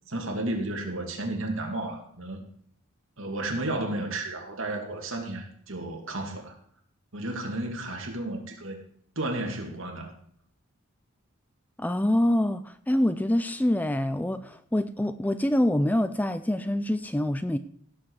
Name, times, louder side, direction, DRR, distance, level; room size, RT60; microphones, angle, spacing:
voice 1, 0.1-2.4 3.2-6.6 7.1-8.9 9.2-10.1, right 2 dB, 65° right, 2 dB, 2.6 m, -32 dB
voice 2, 11.8-17.6, left 1 dB, 10° left, 12 dB, 0.4 m, -25 dB
16.5 x 7.4 x 4.8 m, 0.64 s
head